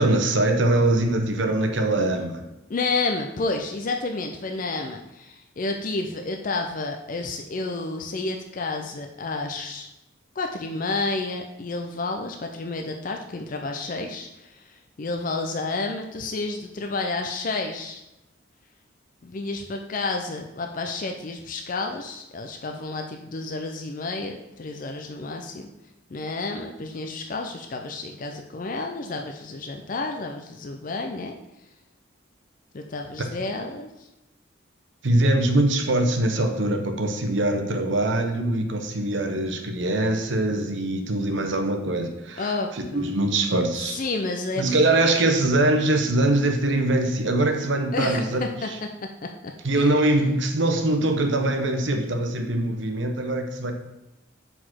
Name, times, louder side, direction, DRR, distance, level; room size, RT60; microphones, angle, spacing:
voice 1, 0.0-2.4 35.0-42.5 42.9-44.0 44.6-48.4 49.6-53.7, right 2 dB, 70° right, 5 dB, 0.9 m, -22 dB
voice 2, 2.7-9.9 10.4-18.0 19.2-25.7 26.1-31.4 32.7-34.1 42.4-43.1 43.7-44.8 47.9-48.7 49.2-49.3 49.7-49.9, left 3 dB, 45° left, 3 dB, 0.4 m, -30 dB
4.9 x 4.0 x 5.8 m, 0.95 s
head